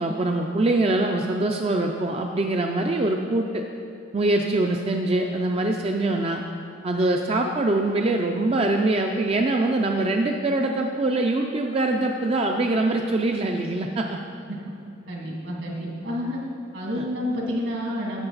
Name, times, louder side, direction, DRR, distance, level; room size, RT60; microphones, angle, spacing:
voice 1, 0.0-3.6 4.1-6.4 6.8-14.2 16.9-17.0, right 2 dB, 30° right, 2 dB, 0.4 m, -23 dB
voice 2, 15.1-16.4 16.7-18.3, left 1 dB, 75° right, -3 dB, 2.4 m, -29 dB
11.5 x 7.9 x 4.0 m, 2.7 s
head